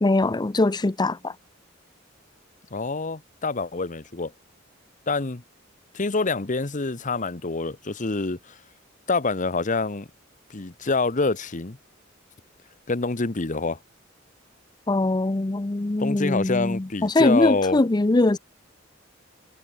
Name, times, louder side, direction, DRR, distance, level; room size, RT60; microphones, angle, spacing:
voice 1, 0.0-1.3 14.9-18.4, left 2 dB, 20° left, 0.5 m, -22 dB
voice 2, 2.7-4.3 5.1-5.4 5.9-8.6 9.1-10.1 10.5-11.8 12.9-13.8 16.0-17.8, left 3 dB, 40° left, 1.1 m, -26 dB
head